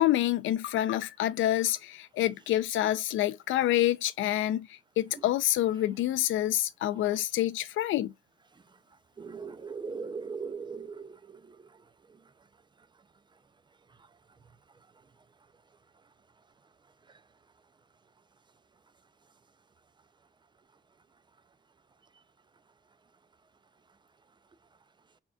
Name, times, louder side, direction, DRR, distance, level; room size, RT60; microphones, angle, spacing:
voice 1, 0.0-8.1, left 13 dB, 80° left, 0.5 m, -27 dB
voice 2, 9.2-11.2 11.5-11.6, right 5 dB, 25° right, 0.4 m, -38 dB
4.4 x 3.7 x 2.3 m
cardioid pair, 90°, 20 cm